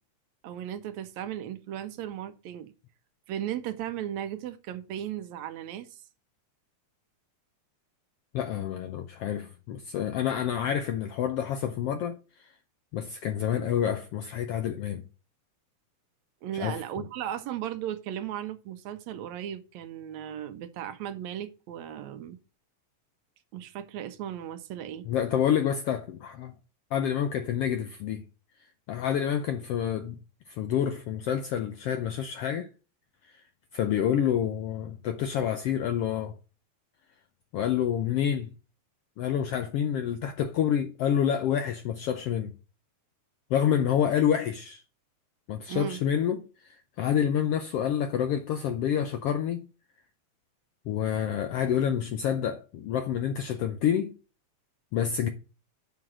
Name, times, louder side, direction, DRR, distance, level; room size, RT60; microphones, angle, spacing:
voice 1, 0.4-2.7 3.3-6.0 16.4-22.4 23.5-25.1 45.7-46.0, right 10 dB, 75° right, 1.9 m, -36 dB
voice 2, 8.3-12.2 12.9-15.0 16.5-16.8 25.1-26.5 26.9-28.2 28.9-30.2 30.5-32.7 33.7-36.3 37.5-38.5 39.2-42.5 43.5-44.8 45.5-49.7 50.9-54.1 54.9-55.3, left 9 dB, 75° left, 1.4 m, -28 dB
7.5 x 5.7 x 6.2 m
omnidirectional pair, 3.4 m